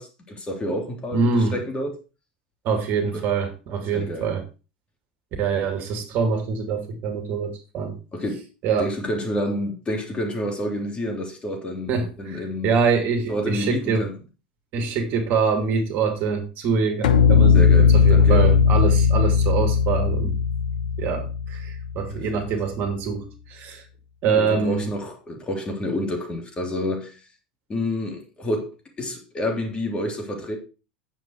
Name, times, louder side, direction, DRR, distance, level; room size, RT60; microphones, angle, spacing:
voice 1, 0.0-1.9 3.1-3.2 3.9-4.3 8.1-8.4 8.8-12.8 13.3-14.2 17.5-18.4 22.1-22.4 24.3-27.1 27.7-28.7 29.0-30.6, left 1 dB, 25° left, 3.3 m, -29 dB
voice 2, 1.1-1.5 2.6-4.4 5.4-8.0 8.6-8.9 11.9-14.1 14.7-20.3 21.0-23.8 24.2-24.9, right 5 dB, 45° right, 2.6 m, -24 dB
sound 1, 17.0-22.3, left 6 dB, 70° left, 0.9 m, -18 dB
9.3 x 7.3 x 4.7 m
hypercardioid pair, 85°, 4 cm